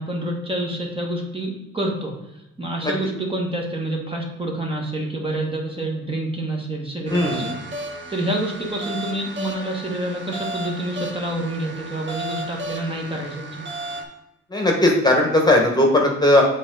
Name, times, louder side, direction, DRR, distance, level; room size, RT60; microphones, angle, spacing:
voice 1, 0.0-2.1 2.6-7.5 8.1-13.6, right 1 dB, 20° right, -1 dB, 1.4 m, -27 dB
voice 2, 7.1-7.4 14.5-16.4, left 1 dB, 15° left, 1 dB, 1.3 m, -17 dB
sound 1, 7.1-14.0, right 2 dB, 40° right, 1.2 m, -34 dB
7.2 x 4.1 x 4.0 m, 0.94 s
cardioid pair, 90°, 30 cm